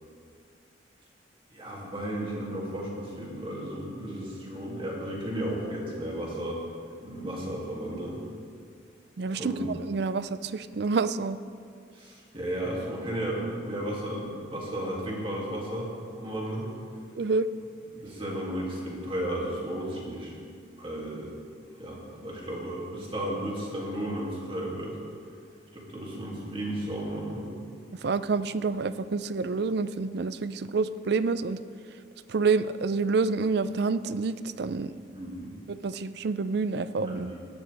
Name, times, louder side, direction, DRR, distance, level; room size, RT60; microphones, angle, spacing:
voice 1, 1.5-6.6 7.0-8.2 9.3-9.7 11.9-16.7 17.9-20.3 20.8-21.3 21.8-25.0 25.7-27.5 35.1-35.6 37.0-37.3, right 1 dB, 25° right, -4 dB, 2.5 m, -34 dB
voice 2, 9.2-11.4 17.2-17.5 28.0-31.6 32.3-35.0 35.7-37.3, right 4 dB, 55° right, 14 dB, 0.4 m, -28 dB
17.0 x 11.5 x 3.4 m, 2.3 s
head